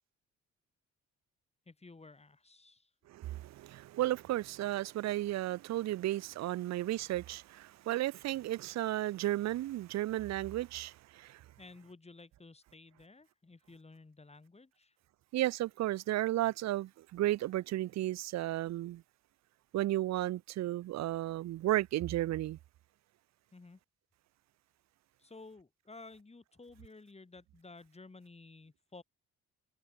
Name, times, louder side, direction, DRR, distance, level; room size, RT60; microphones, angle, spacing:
voice 1, 1.7-2.9 11.6-15.0 23.5-23.8 25.2-29.0, left 3 dB, 20° left, 3.7 m, -54 dB
voice 2, 3.1-11.4 15.3-19.0 19.7-22.6, right 15 dB, 60° right, 0.6 m, -34 dB
cardioid pair, 90°, 30 cm